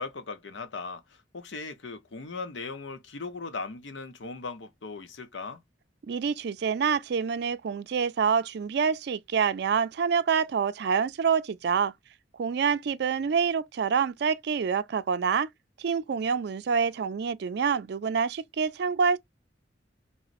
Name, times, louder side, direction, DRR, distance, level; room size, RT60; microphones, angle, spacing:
voice 1, 0.0-5.6, left 4 dB, 90° left, 0.7 m, -38 dB
voice 2, 6.0-11.9 12.4-15.5 15.8-19.2, right 6 dB, 65° right, 0.4 m, -26 dB
4.0 x 2.1 x 2.4 m
head